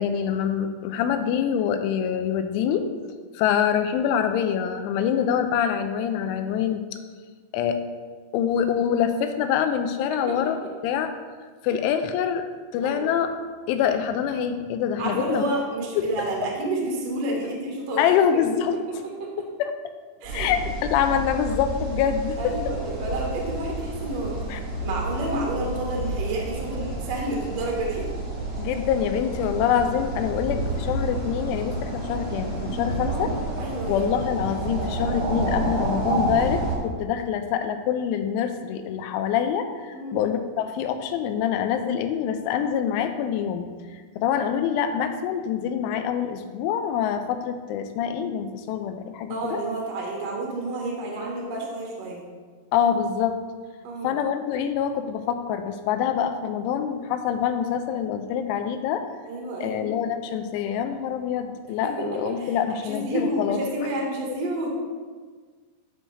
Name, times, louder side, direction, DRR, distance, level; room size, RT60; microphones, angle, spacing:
voice 1, 0.0-2.9 3.3-6.9 7.5-7.8 8.3-10.6 10.8-11.1 11.6-12.4 12.7-13.3 13.7-15.4 16.0-16.1 18.0-18.8 19.4-19.7 20.3-20.6 20.9-22.4 24.5-24.6 28.6-33.3 33.9-49.6 52.7-53.4 54.0-59.0 59.6-63.9, left 8 dB, 85° left, 8 dB, 3.0 m, -25 dB
voice 2, 10.1-10.5 12.8-13.1 15.0-18.0 19.2-19.3 20.2-20.5 22.4-24.4 24.8-28.1 33.1-34.1 39.9-40.2 49.3-52.2 53.8-54.2 59.3-60.0 61.8-64.7, right 1 dB, 80° right, -2 dB, 1.4 m, -30 dB
sound 1, 20.2-36.7, right 2 dB, 45° right, 1.1 m, -30 dB
11.5 x 5.4 x 3.3 m, 1.5 s
omnidirectional pair, 5.5 m